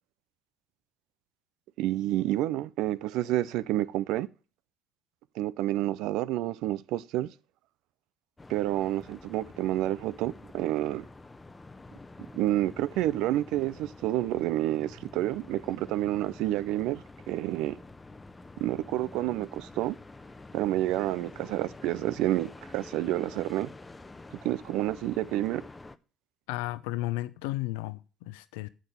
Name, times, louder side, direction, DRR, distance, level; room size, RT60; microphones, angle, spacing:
voice 1, 1.8-4.3 5.4-7.3 8.5-11.0 12.3-17.8 18.6-19.9 20.5-23.7 24.4-25.6, right 14 dB, 80° right, 0.4 m, -29 dB
sound 1, 8.4-26.0, left 2 dB, 20° left, 0.8 m, -48 dB
voice 2, 26.5-28.7, left 17 dB, 90° left, 0.5 m, -33 dB
7.4 x 5.8 x 6.5 m
hypercardioid pair, 60°, 0 cm